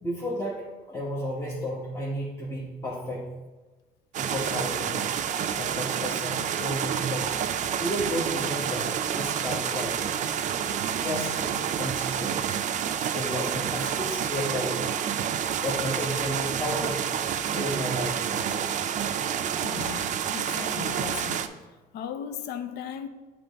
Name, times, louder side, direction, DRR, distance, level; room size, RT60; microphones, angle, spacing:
voice 1, 0.0-3.3 4.2-10.0 10.9-12.4 13.0-14.9 15.2-15.3 15.6-17.0 17.5-18.9, equal, 15° left, -6 dB, 1.0 m, -33 dB
sound 1, 4.1-21.5, right 8 dB, 45° right, 0.4 m, -29 dB
voice 2, 19.6-21.5 21.9-23.1, left 9 dB, 80° left, 9 dB, 0.5 m, -37 dB
7.5 x 3.0 x 4.5 m, 1.2 s
cardioid pair, 110°, 17 cm